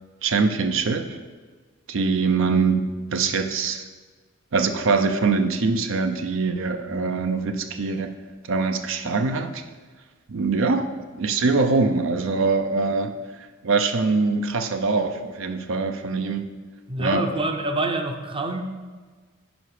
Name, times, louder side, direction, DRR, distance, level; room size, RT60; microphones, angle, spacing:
voice 1, 0.2-1.2 1.9-2.8 3.1-3.8 4.5-8.1 8.5-9.6 10.3-16.5 17.0-17.2, right 4 dB, 65° right, 6 dB, 0.6 m, -23 dB
voice 2, 16.9-18.6, right 2 dB, 25° right, 5 dB, 0.6 m, -26 dB
10.0 x 5.0 x 4.9 m, 1.4 s
head